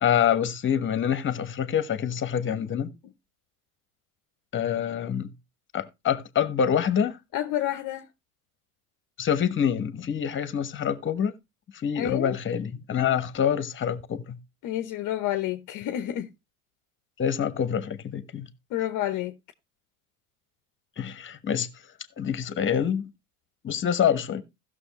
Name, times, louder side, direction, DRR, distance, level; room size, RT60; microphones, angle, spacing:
voice 1, 0.0-2.9 4.5-5.3 5.7-7.2 9.2-11.3 11.7-14.4 17.2-18.5 21.0-21.7 22.2-23.1 23.6-24.4, left 8 dB, 25° left, 1.3 m, -26 dB
voice 2, 7.3-8.1 12.0-12.4 14.6-16.3 18.7-19.3, left 13 dB, 45° left, 0.9 m, -29 dB
16.0 x 6.4 x 3.0 m
hypercardioid pair, 85°, 43 cm